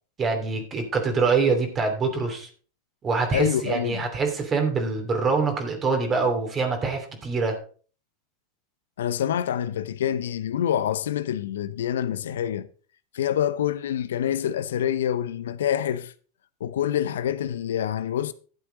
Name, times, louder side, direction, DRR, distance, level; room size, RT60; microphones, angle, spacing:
voice 1, 0.2-2.5 3.0-7.6, right 4 dB, 30° right, 2.8 m, -25 dB
voice 2, 3.3-4.0 9.0-12.7 13.1-16.1 16.6-18.3, left 10 dB, 75° left, 0.7 m, -26 dB
12.0 x 7.9 x 3.9 m
hypercardioid pair, 95°, 0 cm